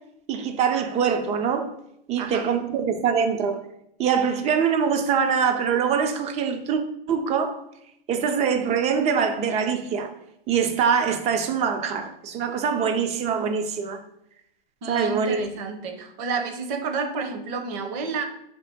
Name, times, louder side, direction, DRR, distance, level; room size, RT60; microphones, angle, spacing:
voice 1, 0.3-1.7 2.1-3.6 4.0-6.8 7.1-7.6 8.1-10.1 10.5-14.0 14.9-15.5, right 6 dB, 20° right, 0.5 m, -23 dB
voice 2, 14.8-18.2, right 4 dB, 45° right, 0.9 m, -30 dB
4.9 x 2.9 x 3.5 m
hypercardioid pair, 115°, 30 cm